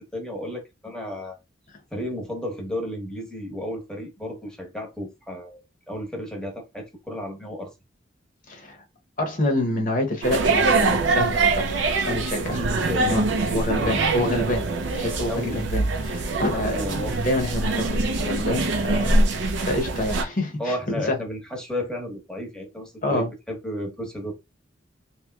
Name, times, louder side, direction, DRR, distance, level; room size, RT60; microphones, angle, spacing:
voice 1, 0.0-1.4 1.9-7.7 12.5-14.0 15.3-15.6 16.5-17.2 20.6-24.3, equal, 5° left, 0.9 m, -33 dB
voice 2, 8.5-8.8 9.2-11.7 12.1-12.6 13.0-13.2 13.5-14.7 14.9-16.9 17.2-19.2 19.6-21.2 23.0-23.3, left 1 dB, 50° left, 0.8 m, -27 dB
sound 1, 10.2-20.2, right 3 dB, 90° right, 0.5 m, -23 dB
3.0 x 3.0 x 2.3 m
head